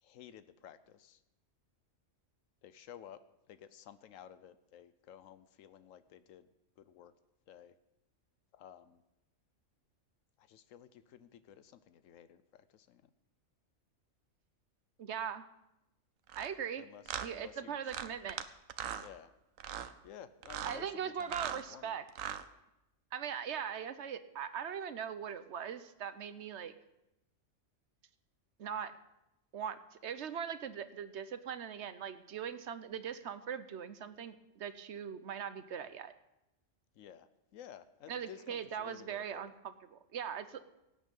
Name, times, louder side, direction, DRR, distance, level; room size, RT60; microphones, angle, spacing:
voice 1, 0.0-1.2 2.6-3.2 3.5-7.1 7.5-7.7 8.5-9.0 10.4-13.0 16.8-18.1 19.0-19.3 20.0-21.4 21.7-22.0 36.9-39.5, left 9 dB, 85° left, 13 dB, 1.0 m, -54 dB
voice 2, 15.0-15.5 16.3-16.8 17.2-18.4 20.6-22.0 23.1-26.7 28.6-29.0 29.5-36.1 38.1-40.7, right 8 dB, 65° right, 12 dB, 1.0 m, -40 dB
sound 1, 16.3-16.5 17.1-17.3 17.9-18.4 18.7-19.1 19.6-19.9 20.4-20.8 21.2-21.6 22.1-22.4, right 9 dB, 90° right, 1.1 m, -39 dB
17.5 x 8.7 x 5.4 m, 0.91 s
omnidirectional pair, 1.3 m